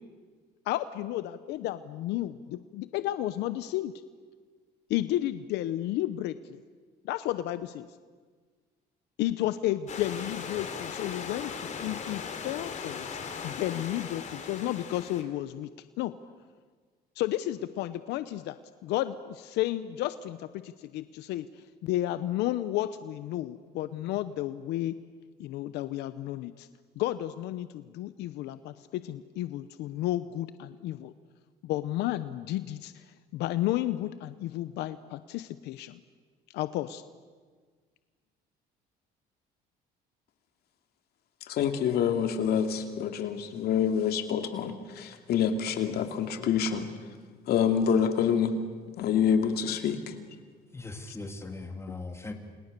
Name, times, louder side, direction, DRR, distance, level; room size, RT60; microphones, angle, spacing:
voice 1, 0.7-3.9 4.9-6.6 7.0-7.9 9.2-13.1 13.4-15.7 16.0-16.1 17.2-21.5 21.8-24.9 25.4-26.7 27.0-31.1 31.6-33.0 33.3-36.0 36.5-37.0, left 14 dB, 85° left, 13 dB, 0.8 m, -32 dB
Stream / Liquid, 9.9-15.2, left 6 dB, 45° left, 3.4 m, -38 dB
voice 2, 41.5-46.9 47.5-48.6 49.0-50.1, left 7 dB, 70° left, 6 dB, 2.6 m, -27 dB
voice 3, 50.7-52.3, left 3 dB, 15° left, 5 dB, 3.1 m, -39 dB
30.0 x 27.0 x 6.8 m, 1.6 s
cardioid pair, 110°, 17 cm